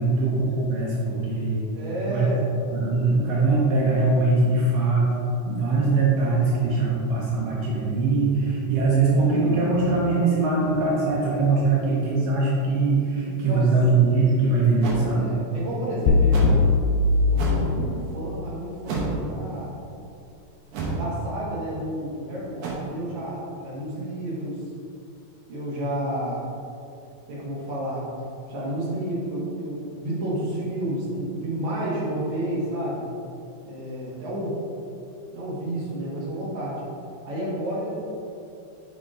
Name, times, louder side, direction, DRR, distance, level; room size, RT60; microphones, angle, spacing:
voice 1, 0.0-1.6 2.1-2.3 2.7-5.1 5.5-15.3, right 3 dB, 85° right, -5 dB, 1.4 m, -22 dB
voice 2, 1.7-2.4 13.1-13.7 15.0-16.7 17.3-19.8 20.9-24.6 25.5-26.4 27.3-28.0 28.5-33.1 33.7-34.6 35.3-36.8 37.2-38.0, right 1 dB, 45° right, -7 dB, 1.7 m, -31 dB
sound 1, 14.8-15.0 16.3-16.6 17.3-17.7 18.8-19.2 20.7-21.1 22.6-22.7, right 3 dB, 65° right, 2.3 m, -29 dB
sound 2, 16.1-18.2, left 3 dB, 85° left, 2.4 m, -20 dB
6.6 x 5.1 x 3.8 m, 2.6 s
omnidirectional pair, 4.1 m